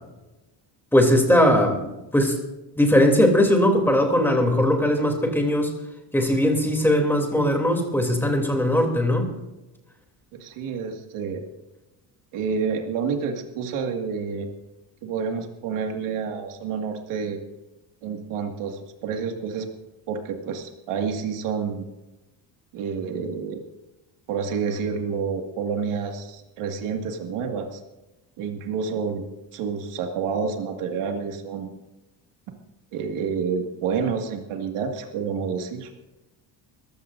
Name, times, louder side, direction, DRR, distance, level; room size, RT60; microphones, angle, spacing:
voice 1, 0.9-1.8 2.1-2.3 2.8-5.7 6.1-9.3, left 1 dB, 5° left, 2 dB, 3.0 m, -19 dB
voice 2, 10.3-11.4 12.3-14.5 15.0-17.4 18.0-19.7 20.1-21.9 22.7-23.6 24.3-27.8 28.4-29.3 29.5-31.7 32.9-35.9, right 6 dB, 85° right, 3 dB, 2.2 m, -29 dB
22.5 x 15.0 x 2.6 m, 1.0 s
cardioid pair, 160°, 49 cm